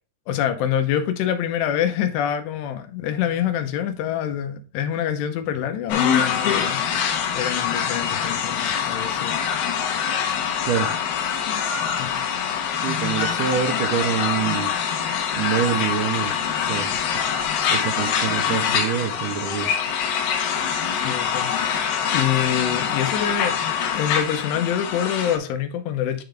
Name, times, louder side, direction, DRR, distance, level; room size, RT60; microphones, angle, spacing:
voice 1, 0.3-6.8 7.3-9.4 12.0-12.2 12.6-13.0 20.9-21.9 22.1-26.2, left 9 dB, 85° left, 3.0 m, -26 dB
sound 1, 5.9-25.4, left 8 dB, 70° left, 2.6 m, -24 dB
voice 2, 12.7-14.7 15.3-16.9 17.7-19.7, right 8 dB, 85° right, 1.8 m, -26 dB
10.0 x 3.8 x 3.4 m
omnidirectional pair, 4.8 m